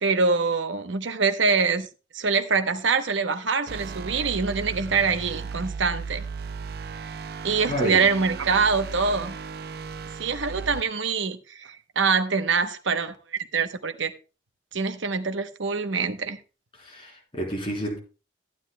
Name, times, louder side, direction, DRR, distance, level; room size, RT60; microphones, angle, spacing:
voice 1, 0.0-1.9 2.1-6.2 7.4-9.3 10.2-13.1 13.5-14.1 14.7-16.4, right 5 dB, 85° right, 0.9 m, -24 dB
sound 1, 3.7-10.8, right 5 dB, 55° right, 0.4 m, -36 dB
voice 2, 7.7-8.1 16.8-18.0, equal, 30° left, 3.4 m, -30 dB
14.0 x 9.8 x 2.2 m
head